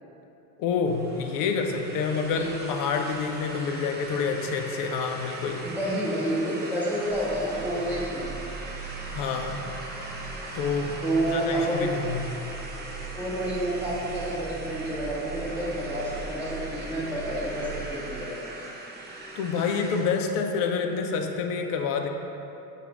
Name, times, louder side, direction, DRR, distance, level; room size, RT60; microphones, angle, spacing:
voice 1, 0.6-5.7 9.1-9.7 10.5-11.0 11.2-12.4 19.4-22.1, left 5 dB, 45° left, 5 dB, 0.4 m, -28 dB
sound 1, 0.8-20.2, right 2 dB, 20° right, 0.5 m, -40 dB
voice 2, 5.6-8.5 11.0-11.9 13.1-18.5, right 1 dB, 5° right, -9 dB, 1.3 m, -29 dB
sound 2, 7.1-17.9, right 5 dB, 15° left, 1.2 m, -40 dB
5.9 x 2.4 x 3.4 m, 2.9 s
hypercardioid pair, 85°, 48 cm